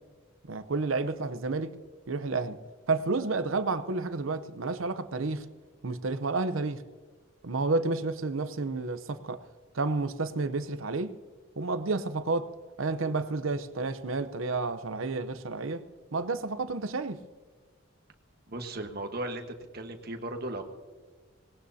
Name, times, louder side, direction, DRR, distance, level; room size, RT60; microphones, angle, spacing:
voice 1, 0.5-1.7 2.1-2.6 2.9-5.4 5.8-6.8 7.4-9.4 9.7-11.2 11.6-12.5 12.8-15.8 16.1-17.2, right 3 dB, 80° right, 0.8 m, -30 dB
voice 2, 18.5-19.4 19.7-20.6, right 2 dB, 50° right, 1.4 m, -36 dB
19.5 x 18.0 x 2.8 m
head